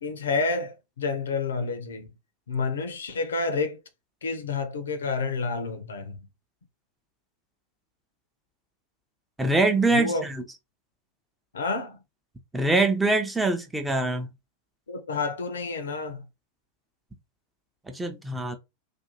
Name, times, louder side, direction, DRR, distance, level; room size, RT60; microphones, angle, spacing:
voice 1, 0.0-2.1 2.5-3.8 4.2-6.2 9.9-10.3 11.5-12.0 14.9-16.2, left 4 dB, 65° left, 0.5 m, -29 dB
voice 2, 9.4-10.4 12.5-14.3 17.9-18.6, right 2 dB, 5° right, 0.5 m, -24 dB
2.5 x 2.2 x 2.8 m
figure-of-eight pair, 90°, 0 cm